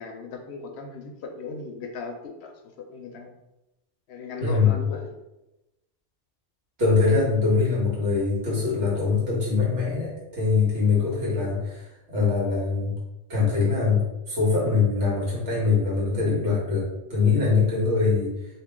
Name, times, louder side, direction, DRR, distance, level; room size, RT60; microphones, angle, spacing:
voice 1, 0.0-3.3 4.1-5.1, left 3 dB, 75° left, 3 dB, 0.8 m, -37 dB
voice 2, 4.4-4.8 6.8-12.9 13.3-18.3, left 4 dB, 85° right, -6 dB, 1.7 m, -23 dB
2.9 x 2.7 x 3.6 m, 0.96 s
omnidirectional pair, 1.2 m